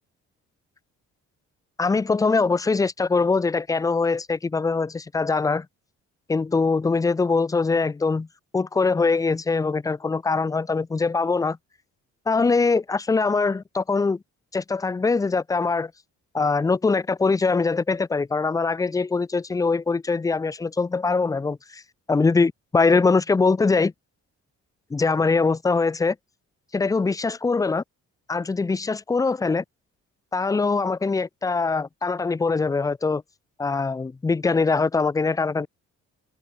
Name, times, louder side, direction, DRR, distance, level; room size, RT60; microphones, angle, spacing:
voice 1, 1.8-5.7 6.3-8.3 8.5-11.6 12.3-14.2 14.5-15.9 16.3-21.8 22.1-23.9 24.9-26.2 26.7-27.8 28.3-29.6 30.3-33.2 33.6-35.7, left 4 dB, 10° left, 0.3 m, -22 dB
cardioid pair, 90°, 30 cm